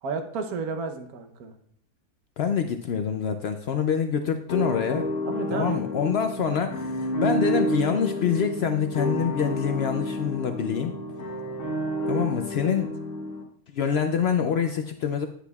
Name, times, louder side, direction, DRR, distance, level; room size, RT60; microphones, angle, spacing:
voice 1, 0.0-1.5 5.2-5.9 12.6-12.9, right 4 dB, 75° right, 7 dB, 1.3 m, -32 dB
voice 2, 2.4-5.1 5.5-10.9 12.1-12.9 13.7-15.3, left 7 dB, 80° left, 6 dB, 0.5 m, -26 dB
sound 1, 4.5-13.4, equal, 60° left, 1.4 m, -30 dB
9.7 x 8.0 x 2.3 m, 0.62 s
omnidirectional pair, 1.6 m